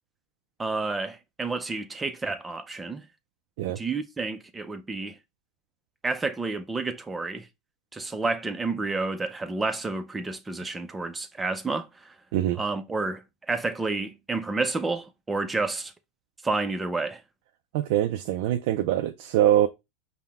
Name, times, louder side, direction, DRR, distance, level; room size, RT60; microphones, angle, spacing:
voice 1, 0.6-3.0 3.7-5.2 6.0-7.5 7.9-12.1 12.6-15.9 16.4-17.2, right 3 dB, 10° right, 0.5 m, -30 dB
voice 2, 17.7-19.7, right 12 dB, 70° right, 0.4 m, -23 dB
5.6 x 2.1 x 3.4 m
supercardioid pair, 135°, 0 cm